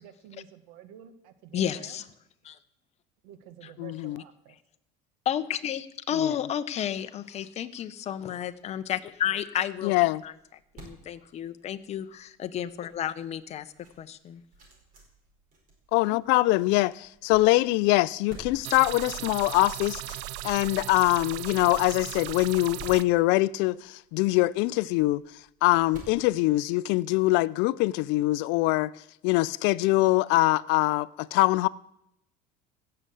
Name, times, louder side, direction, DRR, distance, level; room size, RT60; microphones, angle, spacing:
voice 1, 0.0-2.0 3.2-4.6, right 9 dB, 80° right, 1.4 m, -50 dB
voice 2, 1.5-2.1 2.4-2.5 3.6-3.7 5.3-9.9 10.2-10.3 10.7-13.6 14.0-14.4, left 10 dB, 35° left, 0.7 m, -31 dB
voice 3, 3.8-4.2 6.1-6.4 9.8-10.2 15.9-20.2 20.4-25.2 25.6-28.9 29.2-31.7, left 20 dB, 65° left, 0.5 m, -23 dB
sound 1, 8.7-27.2, right 3 dB, 45° right, 5.0 m, -53 dB
sound 2, 18.6-23.0, right 15 dB, 60° right, 0.5 m, -37 dB
16.0 x 6.8 x 7.7 m
cardioid pair, 135°, 20 cm